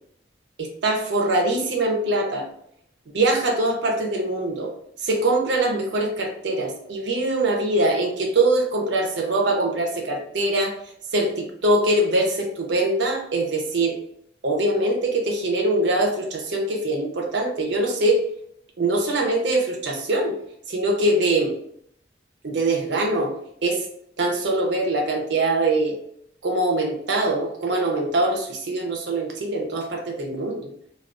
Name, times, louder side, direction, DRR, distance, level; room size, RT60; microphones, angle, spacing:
voice 1, 0.6-2.5 3.1-4.7 5.0-10.7 11.1-14.0 14.4-18.2 18.8-20.4 20.7-21.5 22.4-23.3 23.6-23.8 24.2-26.0 26.4-30.7, right 2 dB, 65° right, 2 dB, 0.5 m, -23 dB
2.3 x 2.3 x 2.4 m, 0.67 s
head